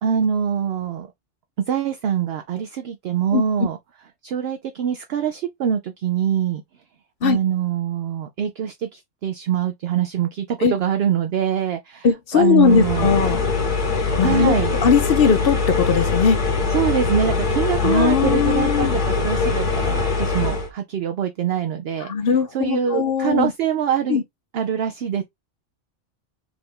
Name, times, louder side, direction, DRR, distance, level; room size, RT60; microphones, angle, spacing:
voice 1, 0.0-1.1 1.7-3.8 4.2-6.6 7.2-12.1 12.3-13.1 14.2-14.8 16.7-22.1 22.5-24.2 24.5-25.2, right 9 dB, 60° right, 0.7 m, -24 dB
voice 2, 3.3-3.7 7.2-7.4 10.6-10.7 12.0-13.4 14.2-16.4 17.8-19.0 22.0-23.5 24.1-24.2, left 6 dB, 60° left, 0.7 m, -19 dB
sound 1, 12.6-20.7, left 4 dB, 40° left, 1.4 m, -22 dB
4.8 x 2.5 x 3.6 m
omnidirectional pair, 1.3 m